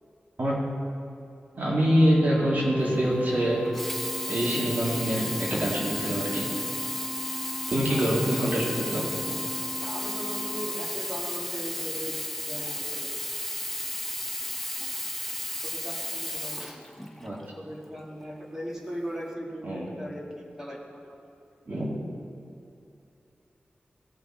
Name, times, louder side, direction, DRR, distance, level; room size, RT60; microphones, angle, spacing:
sound 1, 1.5-10.6, left 1 dB, 30° right, 2.6 m, -39 dB
voice 1, 1.6-3.7 4.3-6.5 7.7-9.1 17.2-17.5 19.6-19.9 21.7-21.9, equal, 50° right, -5 dB, 2.1 m, -25 dB
Sink (filling or washing), 3.6-17.4 18.2-18.3, left 1 dB, 5° left, 0.7 m, -34 dB
voice 2, 9.8-13.2 15.6-16.8 17.5-20.3 20.6-21.2, equal, 15° right, -3 dB, 1.6 m, -38 dB
17.5 x 5.8 x 4.4 m, 2.6 s
wide cardioid pair, 120°, 4 cm